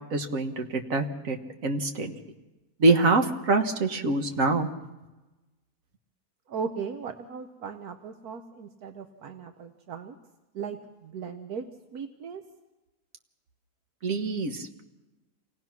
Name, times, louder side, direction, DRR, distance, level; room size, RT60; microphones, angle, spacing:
voice 1, 0.1-1.4 1.6-2.1 2.8-4.7 14.0-14.8, right 3 dB, 60° right, 5 dB, 1.9 m, -25 dB
voice 2, 6.5-10.2 10.5-11.7 11.9-12.4, right 6 dB, 80° right, 7 dB, 1.5 m, -37 dB
27.5 x 18.0 x 6.0 m, 1.1 s
omnidirectional pair, 1.6 m